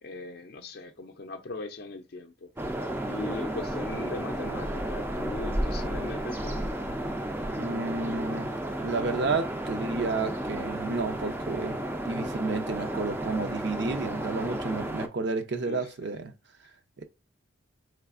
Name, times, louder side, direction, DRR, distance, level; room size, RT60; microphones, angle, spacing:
voice 1, 0.0-2.5 3.1-6.7 15.6-15.9, left 3 dB, 50° left, 0.4 m, -39 dB
sound 1, 2.6-15.1, right 1 dB, 10° right, 0.3 m, -32 dB
voice 2, 7.5-8.5 8.8-11.8 12.1-16.3 17.0-17.1, right 3 dB, 60° right, 0.5 m, -31 dB
4.0 x 3.3 x 2.4 m
head